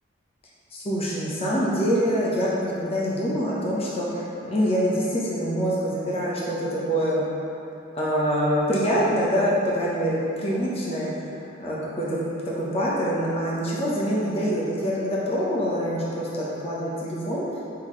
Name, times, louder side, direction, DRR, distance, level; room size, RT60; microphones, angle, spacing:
voice 1, 0.7-7.2 7.9-11.1 11.6-12.2 12.5-17.6, equal, 30° left, -6 dB, 1.0 m, -25 dB
7.2 x 5.8 x 3.2 m, 2.8 s
head